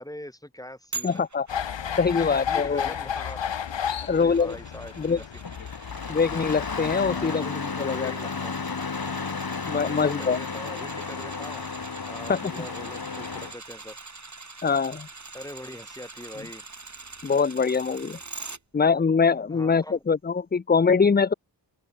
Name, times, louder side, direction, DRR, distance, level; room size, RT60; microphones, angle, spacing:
voice 1, 0.0-1.2 2.1-3.4 4.0-5.2 7.0-7.5 7.9-8.5 9.8-11.7 12.1-14.0 15.3-16.6 19.5-20.0, left 1 dB, 10° left, 7.5 m, -42 dB
sound 1, 0.9-18.6 19.0-19.1, right 3 dB, 40° right, 5.9 m, -44 dB
voice 2, 1.0-1.5 2.0-2.9 4.1-4.6 5.0-5.2 6.1-8.1 9.6-10.4 12.3-12.5 14.6-15.1 17.2-18.2 18.7-21.3, left 5 dB, 25° left, 0.5 m, -23 dB
sound 2, 1.5-7.3, left 8 dB, 80° left, 1.1 m, -33 dB
Engine starting, 5.4-13.5, left 5 dB, 55° left, 3.7 m, -33 dB
open air
wide cardioid pair, 110°, 43 cm